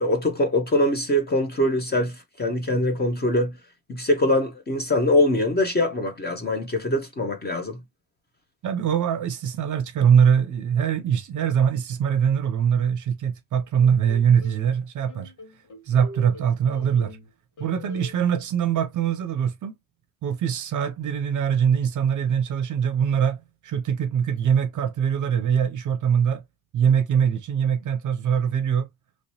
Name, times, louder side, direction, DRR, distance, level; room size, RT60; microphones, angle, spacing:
voice 1, 0.0-3.5 3.9-7.8, left 1 dB, 25° left, 0.7 m, -23 dB
voice 2, 8.6-15.3 15.9-17.2 17.6-19.7 20.2-26.4 26.7-28.9, right 8 dB, 45° right, 0.6 m, -22 dB
sound 1, 13.8-14.6 15.1-17.3 17.6-18.1, left 2 dB, 45° left, 1.9 m, -43 dB
3.1 x 2.9 x 2.8 m
cardioid pair, 100°, 42 cm